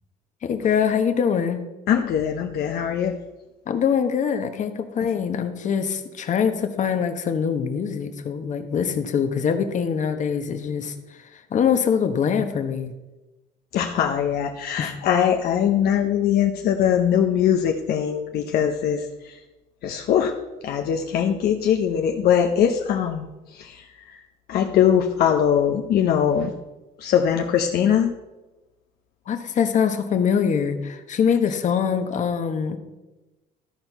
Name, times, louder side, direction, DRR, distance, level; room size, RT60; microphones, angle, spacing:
voice 1, 0.4-1.6 3.7-12.9 14.8-14.9 29.3-32.8, left 7 dB, 45° left, 7 dB, 1.0 m, -23 dB
voice 2, 1.9-3.2 13.7-19.4 19.8-20.3 20.6-24.2 24.5-26.5 27.0-28.1, left 9 dB, 65° left, 3 dB, 0.7 m, -21 dB
13.0 x 4.4 x 5.4 m, 1.1 s
cardioid pair, 110°, 17 cm